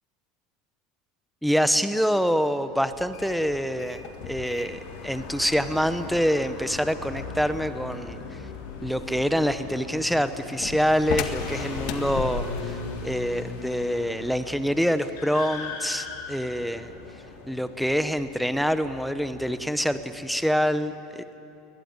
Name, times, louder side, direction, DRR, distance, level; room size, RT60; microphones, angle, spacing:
voice 1, 1.4-8.4 8.8-16.9 17.5-21.2, equal, ahead, 11 dB, 0.8 m, -26 dB
sound 1, 2.9-12.8, left 7 dB, 60° left, 1.8 m, -38 dB
sound 2, 3.2-20.3, left 4 dB, 85° left, 4.9 m, -40 dB
21.5 x 21.0 x 9.6 m, 2.8 s
supercardioid pair, 125°, 0 cm